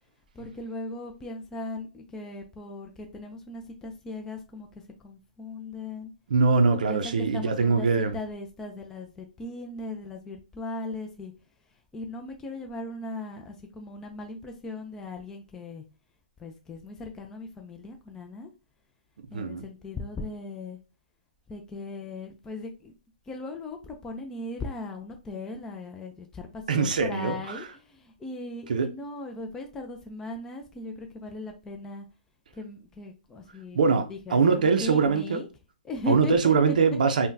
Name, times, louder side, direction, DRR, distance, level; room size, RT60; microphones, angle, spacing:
voice 1, 0.3-6.1 6.9-11.3 11.9-15.8 16.4-18.5 19.3-20.8 21.5-23.0 23.3-32.1 32.6-35.5 35.8-36.7, left 2 dB, 10° left, 0.4 m, -38 dB
voice 2, 6.3-8.2 19.3-19.6 26.7-27.7 28.7-28.9 33.7-35.4 36.1-37.3, right 4 dB, 70° right, 0.5 m, -23 dB
3.6 x 2.2 x 2.6 m
hypercardioid pair, 140°, 5 cm